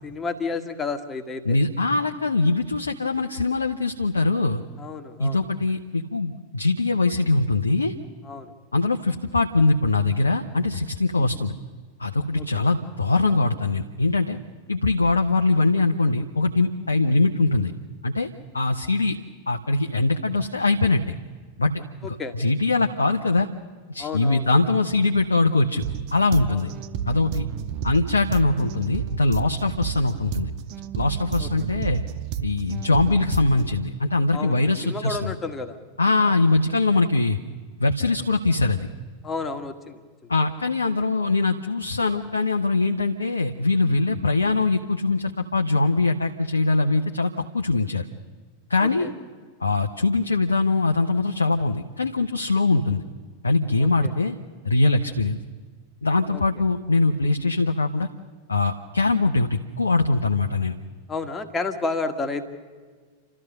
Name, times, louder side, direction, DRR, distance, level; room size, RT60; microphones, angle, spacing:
voice 1, 0.0-1.4 4.8-5.4 8.2-8.5 11.2-11.3 12.4-12.5 22.2-22.3 24.0-24.4 26.5-26.7 31.4-31.5 34.3-35.8 39.2-40.0 48.8-49.1 53.8-54.1 56.3-56.4 61.1-62.4, left 4 dB, 15° left, 6 dB, 1.8 m, -31 dB
voice 2, 1.4-4.6 5.2-7.9 8.7-11.5 12.0-14.4 14.7-17.7 18.0-18.3 18.5-19.2 19.5-21.1 21.6-21.7 22.0-23.5 23.9-25.8 26.1-26.7 27.0-27.5 27.8-30.5 31.0-32.0 32.4-35.4 36.0-37.4 37.8-38.8 40.3-48.1 48.7-49.1 49.6-53.0 53.4-54.4 54.6-55.4 56.0-58.1 58.5-60.7, left 3 dB, 75° left, 4 dB, 0.9 m, -22 dB
sound 1, 25.8-33.8, right 9 dB, 45° right, 0.8 m, -31 dB
29.5 x 13.5 x 6.6 m, 1.5 s
figure-of-eight pair, 90°, 0 cm